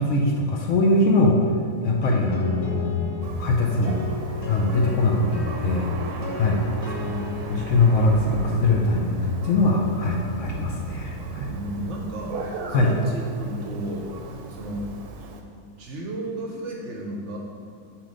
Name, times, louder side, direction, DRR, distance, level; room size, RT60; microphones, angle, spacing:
voice 1, 0.0-1.5 1.8-4.0 4.5-5.9 6.3-6.6 7.5-11.5 12.7-12.9, left 2 dB, 65° left, 0 dB, 0.8 m, -22 dB
sound 1, 2.0-11.6, left 3 dB, 35° left, 0.8 m, -38 dB
Thunder, 3.2-15.4, right 3 dB, 85° right, 1.2 m, -36 dB
voice 2, 6.8-8.0 11.4-14.9 15.8-17.4, right 1 dB, 60° right, 0 dB, 0.9 m, -34 dB
7.0 x 3.0 x 5.1 m, 2.4 s
omnidirectional pair, 1.6 m